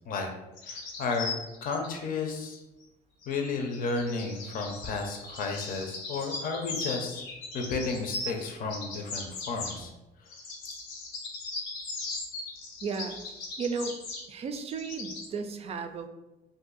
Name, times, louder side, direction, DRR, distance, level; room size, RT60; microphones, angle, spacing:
sound 1, 0.6-1.9 3.2-8.5 8.7-9.8 10.3-15.3, left 3 dB, 90° left, 0.7 m, -39 dB
voice 1, 0.6-1.3 1.6-2.6 3.3-7.2 7.5-9.9, left 4 dB, 55° left, 3 dB, 0.7 m, -32 dB
voice 2, 12.8-13.2 13.6-14.0 14.3-16.1, right 5 dB, 35° right, 8 dB, 0.4 m, -34 dB
2.7 x 2.6 x 3.9 m, 1.0 s
cardioid pair, 110°, 17 cm